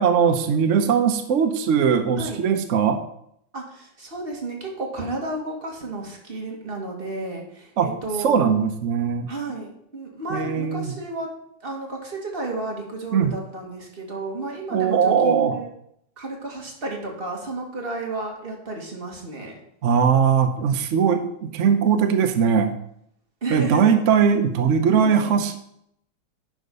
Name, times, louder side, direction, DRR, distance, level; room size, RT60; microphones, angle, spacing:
voice 1, 0.0-3.0 7.8-7.9 8.2-9.3 10.3-10.9 13.1-13.3 14.7-15.6 19.8-22.7 23.5-25.6, right 7 dB, 60° right, 6 dB, 0.8 m, -20 dB
voice 2, 3.5-8.4 9.3-11.3 11.6-15.7 16.2-19.5 23.4-23.9 25.0-25.4, right 2 dB, 30° right, -1 dB, 2.1 m, -32 dB
10.5 x 5.1 x 5.4 m, 0.72 s
omnidirectional pair, 2.2 m